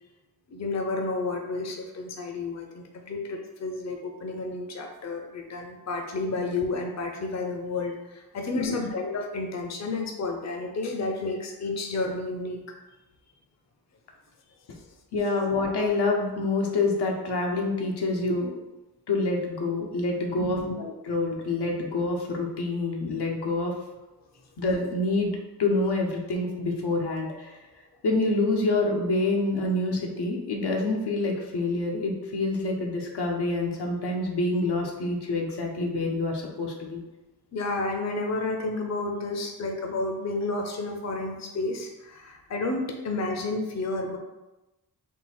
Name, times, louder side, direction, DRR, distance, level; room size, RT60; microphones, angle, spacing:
voice 1, 0.5-12.6 20.4-20.7 37.5-44.2, left 2 dB, 45° left, 3 dB, 0.6 m, -31 dB
voice 2, 15.1-18.6 19.1-23.7 24.6-27.6 28.0-37.0, left 2 dB, 85° left, 0 dB, 0.8 m, -27 dB
3.8 x 2.4 x 4.3 m, 1.0 s
wide cardioid pair, 80°, 39 cm